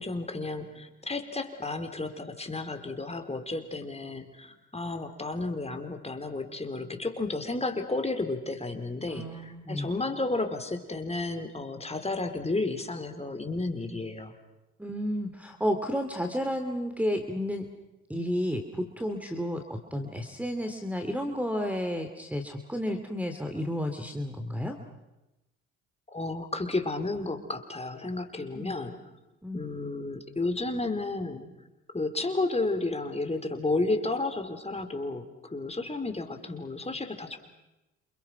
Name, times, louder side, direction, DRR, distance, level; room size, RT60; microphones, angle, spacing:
voice 1, 0.0-14.3 26.1-29.0 29.5-31.5 31.9-37.4, left 2 dB, 20° left, 7 dB, 4.4 m, -32 dB
voice 2, 9.1-9.9 14.8-17.7 18.1-24.8 28.5-28.8 29.4-29.7, equal, 5° right, 6 dB, 2.9 m, -32 dB
29.0 x 27.5 x 6.0 m, 0.99 s
hypercardioid pair, 60°, 34 cm